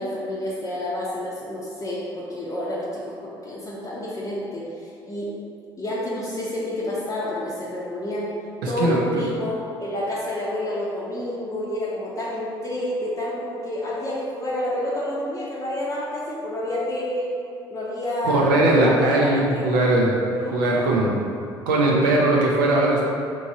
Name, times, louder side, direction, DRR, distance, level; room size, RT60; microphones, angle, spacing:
voice 1, 0.0-5.3 5.8-8.3 8.7-17.3 17.7-19.6 20.8-20.9, left 1 dB, 30° left, -7 dB, 0.6 m, -29 dB
voice 2, 18.2-20.2 20.5-21.1 21.7-23.0, right 2 dB, 85° right, -4 dB, 0.4 m, -19 dB
3.0 x 2.5 x 2.6 m, 2.4 s
hypercardioid pair, 60°, 11 cm